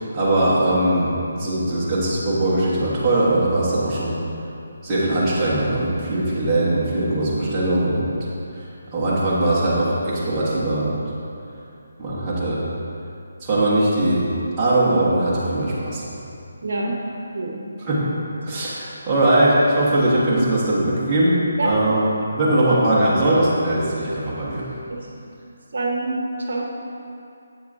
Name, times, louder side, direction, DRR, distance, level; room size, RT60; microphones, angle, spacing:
voice 1, 0.1-1.1 1.4-4.1 4.8-8.1 8.9-10.9 12.0-12.6 13.5-14.2 14.6-16.0 17.9-18.1 18.5-23.8 24.4-24.6, right 1 dB, 15° right, -10 dB, 1.2 m, -20 dB
voice 2, 16.6-17.0 17.3-17.6 19.0-19.2 21.6-21.7 24.9-25.1 25.7-26.7, right 2 dB, 70° right, 0 dB, 0.8 m, -26 dB
7.8 x 6.6 x 2.7 m, 2.6 s
hypercardioid pair, 170°, 0 cm